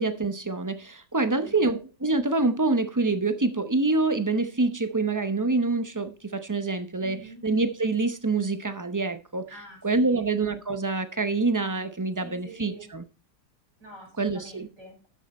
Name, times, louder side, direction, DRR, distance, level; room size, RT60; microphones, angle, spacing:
voice 1, 0.0-9.5 9.8-13.0 14.2-14.7, right 3 dB, 25° right, 0.4 m, -26 dB
voice 2, 1.3-1.7 7.0-7.4 9.5-10.3 12.2-12.9 13.8-15.1, equal, 80° right, 7.1 m, -46 dB
13.0 x 6.7 x 4.2 m
omnidirectional pair, 1.8 m